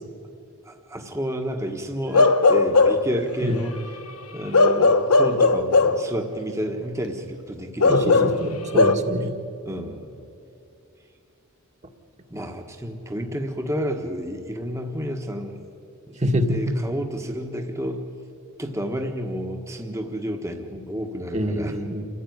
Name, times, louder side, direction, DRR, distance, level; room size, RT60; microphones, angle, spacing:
voice 1, 0.6-4.0 4.3-8.3 9.6-10.3 12.3-15.6 16.1-18.1 18.6-21.8, equal, 15° right, 3 dB, 1.5 m, -30 dB
Bark / Livestock farm animals working animals, 2.1-3.1 4.5-6.1 7.8-8.9, left 3 dB, 90° left, 1.0 m, -17 dB
voice 2, 7.9-9.3 16.2-16.6 21.3-22.0, equal, 30° right, 4 dB, 1.8 m, -25 dB
28.0 x 15.5 x 9.5 m, 2.7 s
head